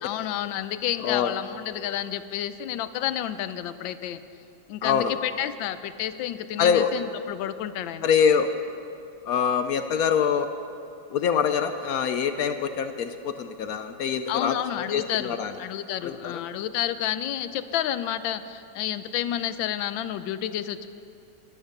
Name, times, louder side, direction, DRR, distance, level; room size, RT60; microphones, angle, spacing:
voice 1, 0.0-4.2 4.7-8.1 14.3-20.9, left 11 dB, 90° left, 13 dB, 1.4 m, -30 dB
voice 2, 4.8-5.2 6.6-6.9 8.0-8.6 9.3-10.5 11.1-15.5 16.0-16.4, left 7 dB, 70° left, 9 dB, 0.9 m, -24 dB
14.0 x 12.0 x 6.6 m, 2.5 s
omnidirectional pair, 2.0 m